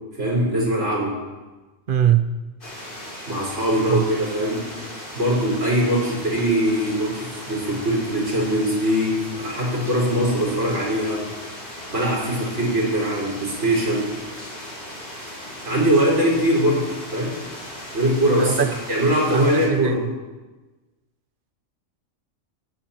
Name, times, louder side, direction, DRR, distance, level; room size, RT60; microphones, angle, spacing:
voice 1, 0.2-1.2 3.3-4.7 5.1-11.3 11.9-14.1 14.4-14.5 15.6-17.4 17.9-18.6 18.9-20.0, equal, 70° right, 4.7 m, -22 dB
voice 2, 1.9-2.3 3.9-4.0 18.4-18.7 19.3-20.0, right 9 dB, 55° right, 0.7 m, -21 dB
sound 1, 2.6-19.7, left 1 dB, 45° left, 2.9 m, -37 dB
22.0 x 8.6 x 2.9 m
omnidirectional pair, 1.3 m